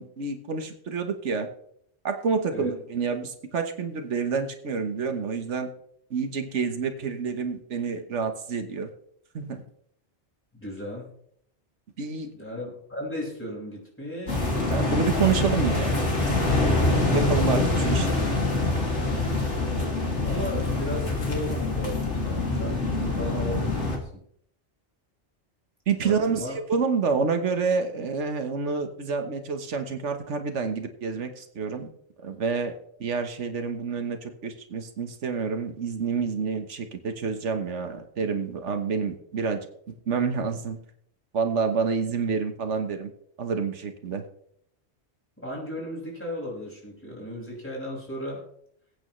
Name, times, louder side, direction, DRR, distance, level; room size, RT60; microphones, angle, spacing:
voice 1, 0.0-1.5 2.0-5.7 6.1-8.9 9.3-9.6 12.0-12.3 14.7-16.0 17.1-18.2 25.9-31.9 32.2-32.7 33.0-39.6 39.9-40.8 41.3-43.1 43.4-44.2, right 5 dB, 85° right, 6 dB, 1.5 m, -28 dB
voice 2, 10.6-11.1 12.3-14.5 17.6-17.8 19.5-19.9 20.2-24.2 26.0-26.5 45.4-48.4, equal, 10° left, -5 dB, 5.7 m, -35 dB
sound 1, 14.3-24.0, left 2 dB, 80° left, 2.8 m, -25 dB
21.5 x 8.8 x 3.2 m, 0.68 s
omnidirectional pair, 1.2 m